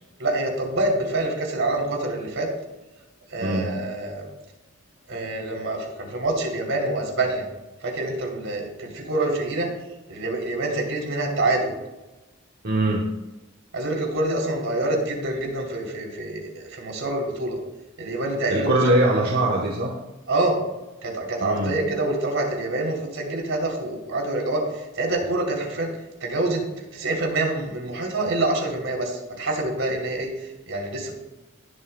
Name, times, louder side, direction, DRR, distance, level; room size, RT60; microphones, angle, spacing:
voice 1, 0.2-2.5 3.3-4.2 5.1-7.5 7.8-9.7 10.1-11.7 13.7-17.6 18.0-18.9 20.3-20.6 21.0-25.9 26.2-31.2, right 2 dB, 75° right, 0 dB, 3.3 m, -26 dB
voice 2, 3.4-3.8 12.6-13.1 18.5-19.9 21.4-21.8, right 1 dB, 50° right, -2 dB, 1.2 m, -22 dB
19.5 x 7.6 x 2.3 m, 1.1 s
head